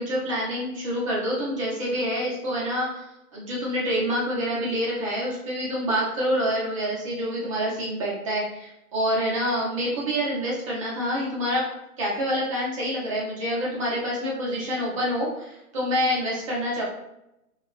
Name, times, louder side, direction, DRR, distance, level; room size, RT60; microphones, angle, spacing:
voice 1, 0.0-3.0 3.3-11.6 12.0-16.8, equal, 25° right, -5 dB, 0.5 m, -27 dB
2.7 x 2.2 x 2.3 m, 0.87 s
hypercardioid pair, 140°, 45 cm